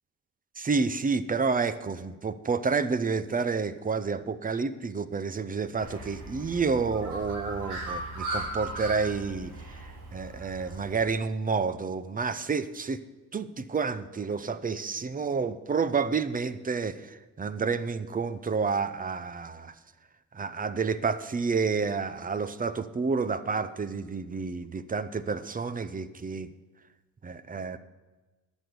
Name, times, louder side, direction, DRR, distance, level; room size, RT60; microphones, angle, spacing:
voice 1, 0.6-9.5 10.1-13.0 13.3-19.7 20.3-26.5 27.2-27.8, right 5 dB, 30° right, 14 dB, 0.7 m, -29 dB
Bird, 5.8-11.0, right 2 dB, 90° right, 2.9 m, -37 dB
12.0 x 6.3 x 9.4 m, 1.2 s
cardioid pair, 90°, 30 cm